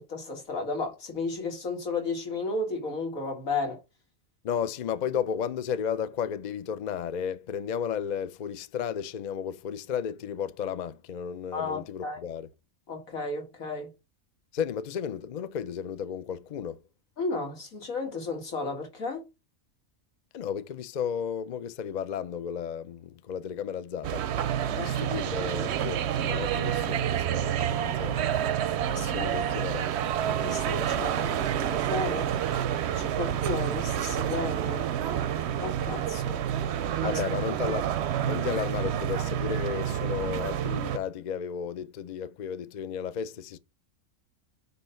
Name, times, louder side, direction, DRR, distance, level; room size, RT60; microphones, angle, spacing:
voice 1, 0.0-3.8 11.5-12.2 12.9-13.9 17.2-19.2 24.7-24.9 28.9-29.3 30.4-32.3 32.9-34.9 35.6-36.4 37.0-37.2, left 3 dB, 80° left, 2.3 m, -33 dB
voice 2, 4.4-12.5 14.5-16.8 20.3-24.2 24.7-28.5 29.0-29.9 37.0-37.9 38.2-43.6, left 8 dB, 60° left, 0.4 m, -33 dB
sound 1, 24.0-41.0, right 10 dB, 65° right, 0.7 m, -29 dB
8.2 x 2.8 x 5.6 m
omnidirectional pair, 1.4 m